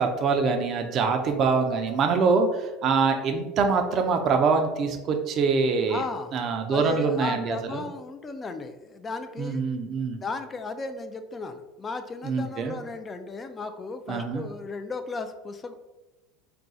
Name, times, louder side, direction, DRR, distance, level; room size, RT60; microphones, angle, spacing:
voice 1, 0.0-6.0 6.3-7.8 9.4-10.2 12.2-12.8 14.1-14.5, right 5 dB, 45° right, 5 dB, 0.4 m, -24 dB
voice 2, 5.9-6.3 6.7-9.6 10.2-15.7, left 3 dB, 25° left, 8 dB, 0.4 m, -35 dB
2.4 x 2.3 x 3.9 m, 1.0 s
hypercardioid pair, 95°, 0 cm